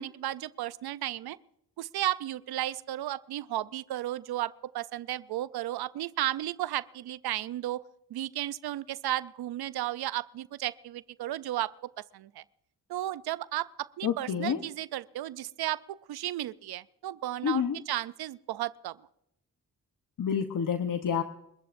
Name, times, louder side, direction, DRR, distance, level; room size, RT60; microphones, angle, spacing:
voice 1, 0.0-1.4 1.8-7.8 8.1-11.7 12.1-12.4 12.9-19.0, right 14 dB, 80° right, 17 dB, 0.6 m, -34 dB
voice 2, 14.0-14.6 17.4-17.8 20.2-21.2, left 7 dB, 55° left, 7 dB, 1.1 m, -28 dB
29.0 x 14.5 x 2.6 m, 0.78 s
cardioid pair, 60°, 38 cm